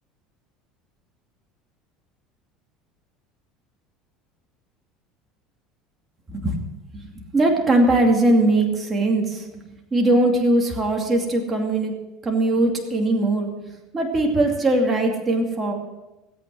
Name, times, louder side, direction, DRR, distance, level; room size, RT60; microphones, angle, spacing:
voice 1, 6.3-9.6 9.9-12.0 12.2-13.5 13.9-15.7, right 2 dB, 20° right, 1 dB, 2.5 m, -20 dB
18.0 x 8.7 x 6.3 m, 1.0 s
supercardioid pair, 120°, 0 cm